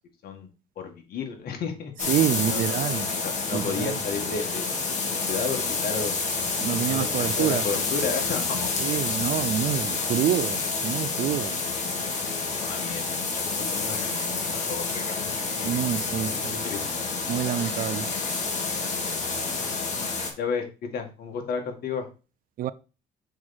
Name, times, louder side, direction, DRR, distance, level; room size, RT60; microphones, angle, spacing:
voice 1, 0.8-2.8 3.2-6.2 6.6-8.7 12.6-16.8 20.4-22.1, left 5 dB, 65° left, 2.0 m, -33 dB
sound 1, 2.0-20.3, left 4 dB, 45° left, 2.2 m, -28 dB
voice 2, 2.1-3.1 3.5-4.0 6.6-7.6 8.8-11.6 15.6-16.6 17.3-18.1 22.6-22.7, right 11 dB, 55° right, 0.5 m, -27 dB
6.1 x 4.6 x 4.2 m
cardioid pair, 110°, 17 cm